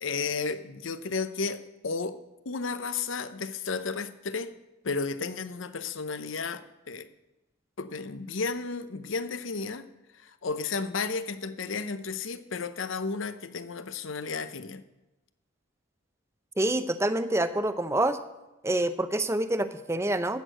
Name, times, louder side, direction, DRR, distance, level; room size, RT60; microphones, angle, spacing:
voice 1, 0.0-2.2 2.4-4.5 4.8-7.1 7.8-9.9 10.2-14.8, left 4 dB, 80° left, 12 dB, 0.8 m, -33 dB
voice 2, 16.6-18.2 18.6-20.4, right 1 dB, 15° right, 11 dB, 0.6 m, -27 dB
14.5 x 6.5 x 7.6 m, 1.0 s
head